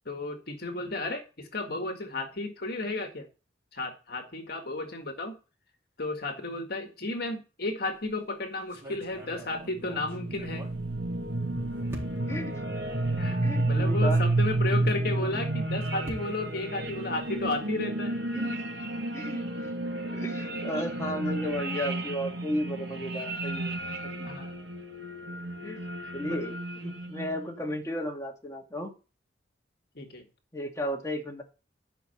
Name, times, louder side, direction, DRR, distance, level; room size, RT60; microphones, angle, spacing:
voice 1, 0.1-3.3 3.7-5.3 6.0-10.6 13.2-13.4 13.7-18.2 23.3-23.4 24.2-24.6 26.0-26.4 30.0-30.3, left 2 dB, 60° left, 5 dB, 1.8 m, -33 dB
sound 1, 7.8-8.2 8.7-11.4 11.9-12.5 13.2-13.3 13.6-13.7 15.4-17.7, equal, 15° right, 4.2 m, -46 dB
sound 2, 9.1-27.5, right 2 dB, 70° right, 2.2 m, -31 dB
voice 2, 13.3-14.2 15.2-15.4 18.3-18.6 19.1-19.7 20.1-23.8 24.0-24.3 25.6-25.9 26.1-28.9 30.5-31.4, equal, 15° left, 1 dB, 2.3 m, -34 dB
12.5 x 5.6 x 6.8 m, 0.33 s
head